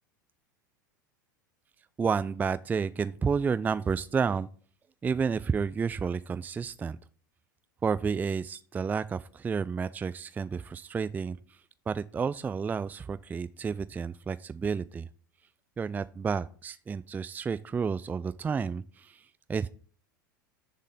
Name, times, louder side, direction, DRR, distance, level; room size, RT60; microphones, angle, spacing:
voice 1, 2.0-4.5 5.0-7.0 7.8-11.6 11.9-15.1 15.8-19.7, right 5 dB, 15° right, 15 dB, 0.4 m, -31 dB
7.0 x 5.5 x 6.6 m, 0.43 s
hypercardioid pair, 85°, 11 cm